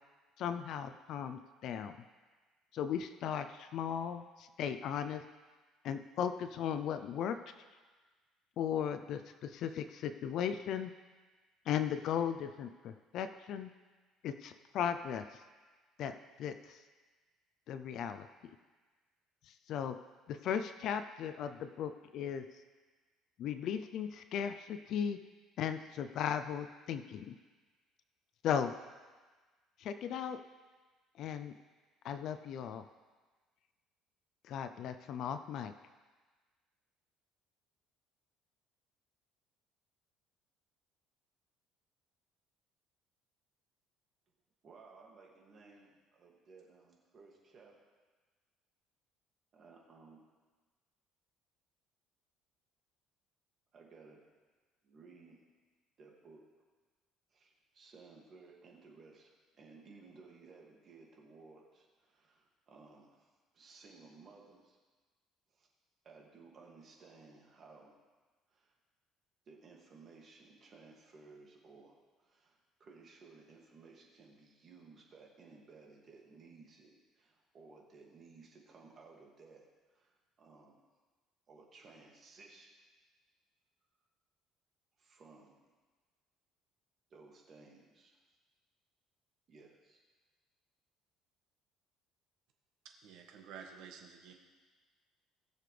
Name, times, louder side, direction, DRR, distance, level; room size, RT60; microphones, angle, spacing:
voice 1, 0.4-2.0 2.7-5.2 5.8-7.4 8.6-10.9 11.7-13.7 14.2-15.4 16.0-16.8 17.7-18.3 19.5-20.0 20.3-22.5 23.4-25.2 25.6-27.3 28.4-28.7 29.8-30.4 31.2-31.5 32.0-32.8 34.4-35.7, left 8 dB, 55° left, 10 dB, 0.4 m, -37 dB
voice 2, 44.6-47.8 49.5-50.3 53.7-54.2 54.8-55.4 56.0-56.4 57.3-64.8 65.5-65.7 66.0-68.0 68.5-68.8 69.5-79.7 79.9-80.8 81.5-82.7 85.0-85.6 87.1-88.1 89.5-90.0, right 4 dB, 35° right, -1 dB, 2.2 m, -58 dB
voice 3, 92.8-94.3, right 7 dB, 75° right, 2 dB, 1.6 m, -51 dB
19.5 x 6.8 x 3.3 m, 1.4 s
cardioid pair, 140°, 0 cm